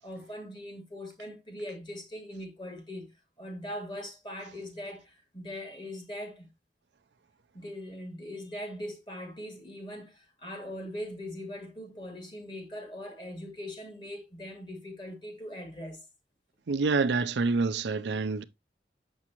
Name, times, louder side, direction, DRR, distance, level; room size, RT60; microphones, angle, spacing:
voice 1, 0.0-3.1 3.4-6.5 7.5-16.1, left 1 dB, 25° left, 2.1 m, -41 dB
voice 2, 16.7-18.4, right 4 dB, 85° right, 0.5 m, -27 dB
7.1 x 6.1 x 2.9 m
head